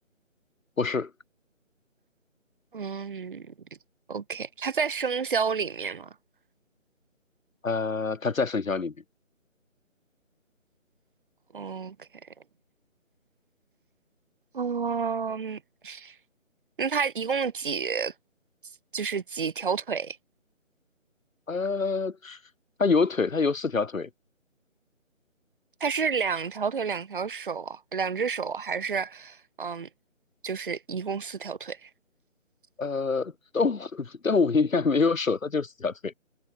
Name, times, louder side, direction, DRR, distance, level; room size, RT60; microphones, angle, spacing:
voice 1, 0.8-1.1 7.6-8.9 21.5-22.4 22.8-24.1 32.8-36.1, left 4 dB, 80° left, 1.3 m, -26 dB
voice 2, 2.7-3.5 4.1-6.1 11.5-12.1 14.5-16.1 16.8-18.1 18.9-20.2 25.8-29.9 30.4-31.9, right 6 dB, 40° right, 3.2 m, -30 dB
figure-of-eight pair, 160°, 40 cm